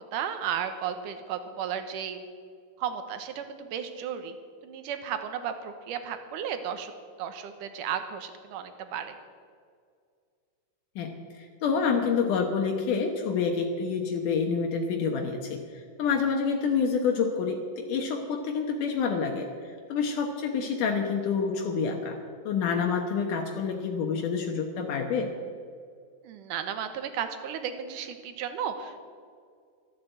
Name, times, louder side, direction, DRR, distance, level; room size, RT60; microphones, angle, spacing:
voice 1, 0.1-2.2 2.8-4.3 4.6-6.9 7.2-9.2 26.2-29.0, right 8 dB, 80° right, 8 dB, 2.6 m, -34 dB
voice 2, 11.4-22.2 22.5-25.3, left 5 dB, 75° left, 2 dB, 2.6 m, -28 dB
13.0 x 12.5 x 8.0 m, 2.2 s
omnidirectional pair, 3.8 m